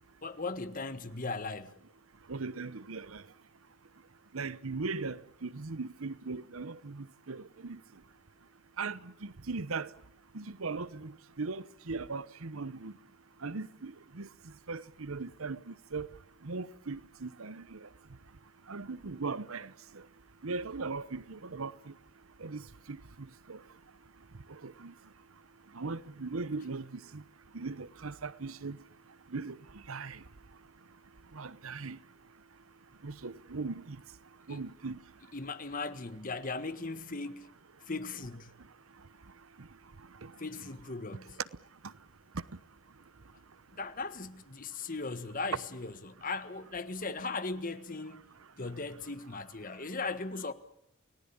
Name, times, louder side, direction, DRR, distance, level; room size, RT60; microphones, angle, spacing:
voice 1, 0.2-1.7 34.5-34.6 35.3-37.5 37.9-38.5 40.4-41.4 43.8-48.2 48.6-50.5, left 3 dB, 40° left, 1.6 m, -38 dB
voice 2, 2.3-3.2 4.3-7.8 8.8-9.9 10.3-12.9 13.4-14.3 14.7-16.1 16.4-17.9 18.7-20.0 20.4-21.9 22.4-23.6 24.5-24.9 25.7-27.2 27.5-28.8 29.3-30.2 31.3-32.0 33.0-34.0 34.5-35.0 39.6-39.7 40.2-40.3 41.8-41.9, right 4 dB, 85° right, 1.0 m, -39 dB
29.0 x 19.0 x 8.8 m
head